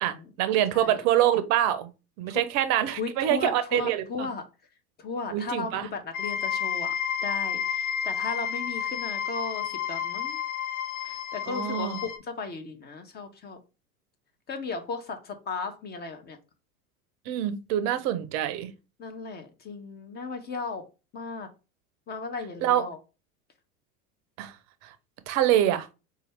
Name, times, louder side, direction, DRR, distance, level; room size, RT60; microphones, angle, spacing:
voice 1, 0.0-1.9 2.2-4.3 5.3-5.9 11.5-12.0 17.3-18.7 22.6-22.8 24.4-24.5 24.8-24.9 25.3-25.9, right 12 dB, 40° right, 0.6 m, -25 dB
voice 2, 0.7-1.0 2.3-2.4 2.9-4.4 5.0-6.9 7.2-10.4 11.0-13.6 14.5-16.4 19.0-20.8 21.1-21.5 22.1-23.0, left 4 dB, 20° left, 0.6 m, -36 dB
sound 1, 6.1-12.2, left 8 dB, 70° left, 0.7 m, -31 dB
4.0 x 2.3 x 3.2 m
hypercardioid pair, 85°, 45 cm